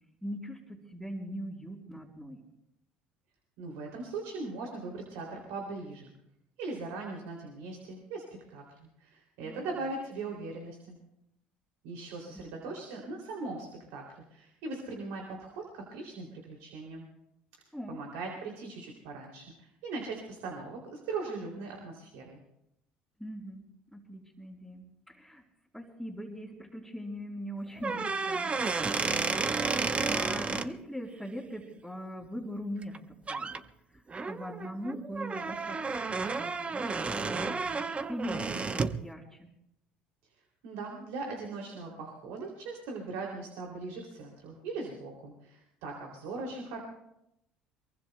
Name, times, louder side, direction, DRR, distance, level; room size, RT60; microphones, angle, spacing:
voice 1, 0.2-2.4 9.4-9.6 12.3-12.8 17.7-18.0 23.2-25.4 25.7-28.5 29.3-33.6 33.9-35.8 36.2-39.5, equal, 5° right, -5 dB, 3.7 m, -41 dB
voice 2, 3.6-6.1 6.6-11.0 11.8-17.0 17.9-22.4 40.6-46.8, right 3 dB, 75° right, 0 dB, 2.9 m, -40 dB
sound 1, 27.8-30.7 32.8-33.0 33.3-33.6 34.1-39.0, right 4 dB, 30° right, 0.9 m, -32 dB
23.5 x 23.0 x 2.2 m, 0.81 s
hypercardioid pair, 70°, 4 cm